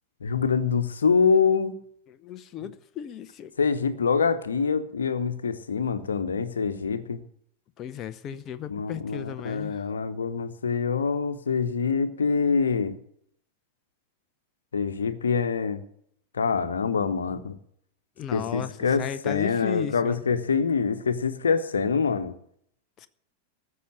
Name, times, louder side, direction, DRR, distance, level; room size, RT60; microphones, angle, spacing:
voice 1, 0.2-1.7 3.6-7.2 8.7-13.0 14.7-15.8 16.4-17.6 18.3-22.3, left 5 dB, 70° left, 1.2 m, -25 dB
voice 2, 2.1-3.5 7.8-9.8 18.2-18.7 19.0-20.2 23.0-23.1, left 10 dB, 30° left, 0.8 m, -35 dB
14.0 x 6.8 x 9.0 m
figure-of-eight pair, 90°, 0 cm